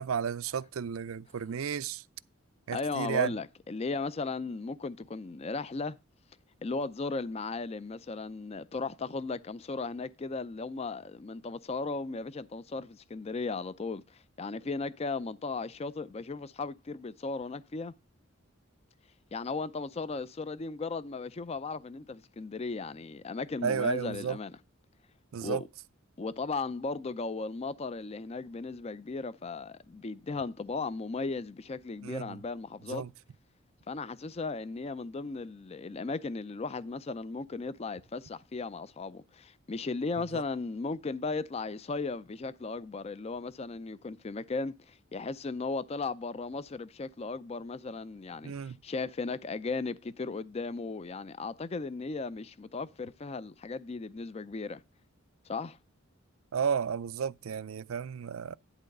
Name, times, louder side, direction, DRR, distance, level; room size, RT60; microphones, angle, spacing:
voice 1, 0.0-2.0 2.7-3.3 23.6-24.4 25.3-25.6 32.0-32.4 32.9-33.1 40.3-40.4 48.4-48.8 56.5-58.6, right 7 dB, 80° right, 0.5 m, -32 dB
voice 2, 2.7-6.0 6.6-17.9 19.3-24.6 25.4-25.7 26.2-33.0 33.9-54.8 55.5-55.8, left 3 dB, 30° left, 0.4 m, -36 dB
11.0 x 3.9 x 6.5 m
head